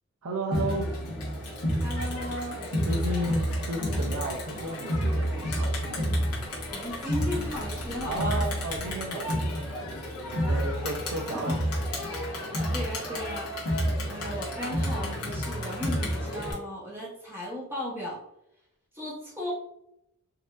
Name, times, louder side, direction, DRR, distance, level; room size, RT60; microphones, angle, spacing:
voice 1, 0.2-0.9 2.8-6.0 8.1-10.0 10.3-11.5, right 1 dB, 75° right, -1 dB, 0.6 m, -33 dB
Crowd, 0.5-16.5, equal, 85° left, 1.1 m, -30 dB
voice 2, 1.8-2.6 6.7-8.4 11.1-11.5 12.3-13.5 14.1-18.2 18.9-19.5, left 1 dB, 10° right, -6 dB, 0.9 m, -36 dB
4.0 x 2.6 x 2.4 m, 0.79 s
head